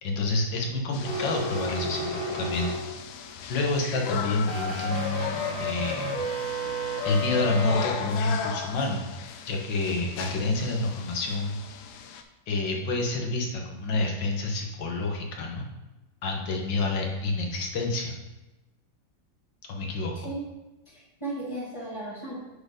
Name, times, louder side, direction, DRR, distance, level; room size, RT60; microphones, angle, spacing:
voice 1, 0.0-2.9 3.5-6.3 7.0-9.1 9.5-11.6 12.5-15.7 16.2-18.1 19.7-20.3, left 2 dB, 70° left, 1 dB, 1.8 m, -28 dB
sound 1, 0.9-12.2, left 7 dB, 85° left, 1.4 m, -38 dB
sound 2, 1.0-3.2 4.4-7.8, left 1 dB, 50° left, 2.6 m, -31 dB
voice 2, 20.9-22.4, right 1 dB, 15° left, -10 dB, 1.6 m, -36 dB
7.6 x 4.5 x 5.0 m, 1.0 s
omnidirectional pair, 2.1 m